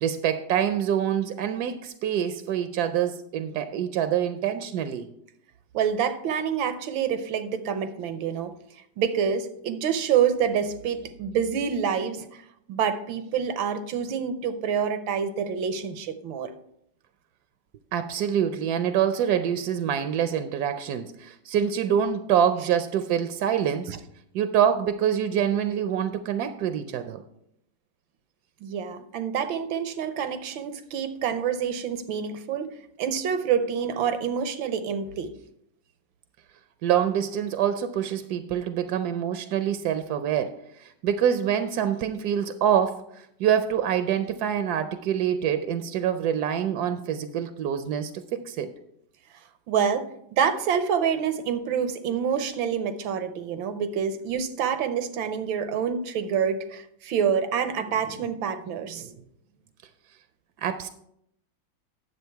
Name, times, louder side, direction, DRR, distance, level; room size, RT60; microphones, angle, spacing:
voice 1, 0.0-5.1 17.9-23.9 24.3-27.2 36.8-48.7 60.6-60.9, right 9 dB, 70° right, 1.0 m, -26 dB
voice 2, 5.7-8.6 9.0-12.4 12.7-16.5 23.9-24.0 28.6-35.3 49.7-59.2, right 7 dB, 85° right, 1.6 m, -27 dB
9.7 x 7.7 x 4.6 m
omnidirectional pair, 2.1 m